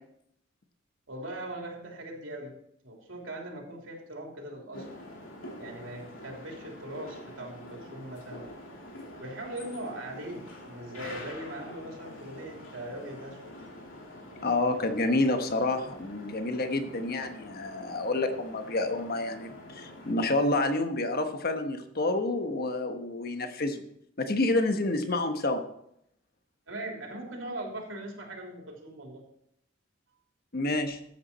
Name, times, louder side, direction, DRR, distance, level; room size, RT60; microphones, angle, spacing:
voice 1, 1.1-2.6 2.8-4.9 5.6-8.5 9.2-13.5 26.7-29.2, right 1 dB, 85° right, 1 dB, 3.1 m, -40 dB
sound 1, 4.7-20.2, left 1 dB, 85° left, 2.7 m, -46 dB
voice 2, 14.4-23.8 24.2-25.6 30.5-31.0, left 2 dB, 50° left, 7 dB, 1.2 m, -28 dB
13.5 x 8.4 x 4.3 m, 0.75 s
head